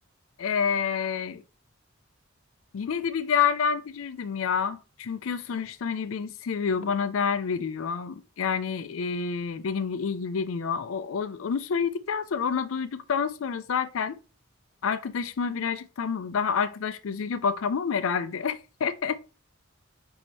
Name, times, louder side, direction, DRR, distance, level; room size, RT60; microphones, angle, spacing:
voice 1, 0.4-1.4 2.7-14.2 14.8-19.2, left 6 dB, 90° left, 0.4 m, -28 dB
5.2 x 2.8 x 3.3 m
head